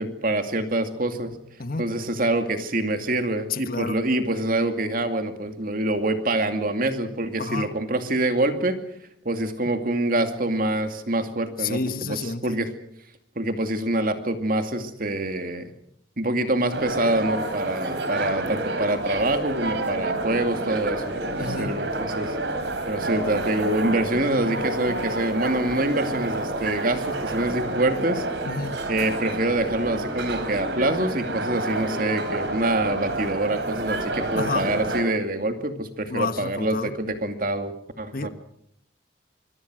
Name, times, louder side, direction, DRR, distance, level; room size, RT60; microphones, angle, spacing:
voice 1, 0.0-1.3 1.8-8.8 9.2-12.7 13.4-15.7 16.2-22.4 22.9-28.3 28.9-38.3, right 1 dB, 45° right, 7 dB, 2.5 m, -25 dB
voice 2, 3.5-4.0 7.4-7.7 11.6-12.5 21.4-21.8 28.5-28.8 34.4-34.7 36.1-36.9 38.1-38.3, left 4 dB, 50° left, 11 dB, 1.3 m, -29 dB
sound 1, 16.7-35.0, right 2 dB, 65° right, 3.7 m, -29 dB
25.0 x 23.5 x 6.3 m, 0.69 s
head